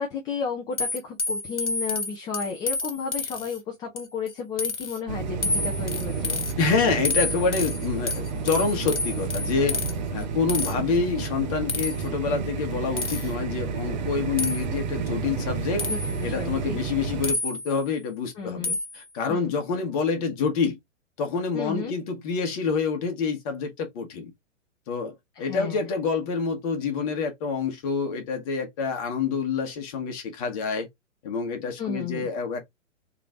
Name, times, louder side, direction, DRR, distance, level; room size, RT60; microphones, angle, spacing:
voice 1, 0.0-6.4 15.9-16.8 18.4-18.8 19.3-19.5 21.5-21.9 25.4-25.8 31.8-32.3, left 6 dB, 10° left, 0.6 m, -33 dB
sound 1, 0.8-3.6 4.0-4.3 4.6-5.0 5.4-6.5 7.1-9.9 10.5-10.7 11.7-12.1 13.0-13.3 14.4-14.6 15.8-16.2 17.2-17.8 18.6-19.0, left 3 dB, 65° left, 1.3 m, -29 dB
sound 2, 5.1-17.3, right 5 dB, 35° right, 0.8 m, -31 dB
voice 2, 6.6-9.8 10.1-15.8 16.2-20.8 21.2-24.3 24.9-30.9 31.2-32.6, left 5 dB, 30° left, 1.3 m, -27 dB
3.9 x 3.2 x 3.7 m
figure-of-eight pair, 115°, 39 cm